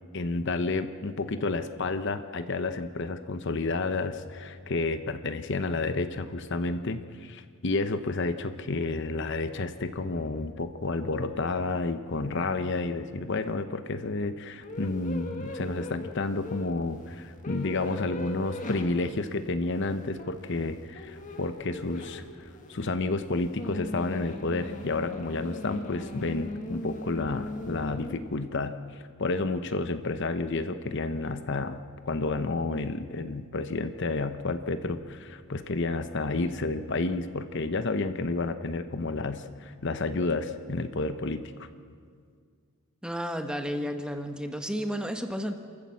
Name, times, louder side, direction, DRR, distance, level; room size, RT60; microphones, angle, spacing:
voice 1, 0.1-22.2 22.7-41.7, left 3 dB, 55° left, 10 dB, 0.8 m, -30 dB
sound 1, 14.6-28.2, left 2 dB, 35° left, 1.8 m, -40 dB
voice 2, 43.0-45.6, equal, 5° right, 6 dB, 1.0 m, -32 dB
28.5 x 14.0 x 7.6 m, 2.1 s
head